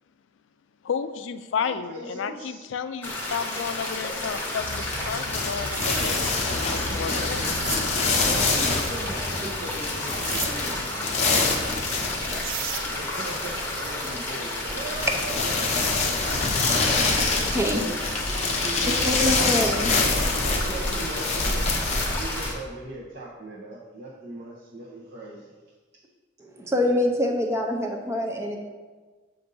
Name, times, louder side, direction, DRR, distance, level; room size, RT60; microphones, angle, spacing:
voice 1, 0.8-7.4, left 6 dB, 70° left, 11 dB, 0.4 m, -32 dB
voice 2, 1.6-2.6 6.9-11.0 12.9-16.3 17.3-19.1 20.6-21.7 22.1-25.5, right 2 dB, 55° right, -5 dB, 0.8 m, -39 dB
sound 1, 3.0-22.5, left 1 dB, 10° left, 0.9 m, -31 dB
sound 2, 4.6-22.5, left 3 dB, 35° left, 0.7 m, -27 dB
sound 3, 5.5-6.2 7.4-7.8 10.2-10.5 12.0-12.1 12.4-12.9, right 12 dB, 90° right, 0.3 m, -34 dB
voice 3, 17.5-17.8 19.0-20.7 26.4-28.6, left 1 dB, 15° right, 2 dB, 0.6 m, -26 dB
7.6 x 2.6 x 5.3 m, 1.4 s
head